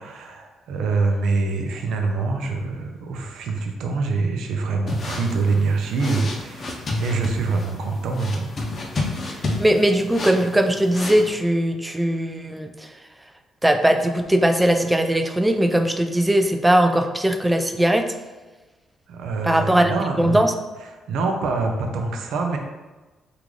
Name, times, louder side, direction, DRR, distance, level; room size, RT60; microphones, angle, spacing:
voice 1, 0.0-8.6 19.1-20.4 20.9-22.6, right 3 dB, 80° right, 3 dB, 0.5 m, -25 dB
sound 1, 4.9-11.3, left 2 dB, 45° left, 0.6 m, -31 dB
voice 2, 9.6-12.7 13.6-18.0 19.5-19.9 20.2-20.5, right 1 dB, 10° right, 6 dB, 0.3 m, -19 dB
3.7 x 2.4 x 3.1 m, 1.2 s
cardioid pair, 90°, 0 cm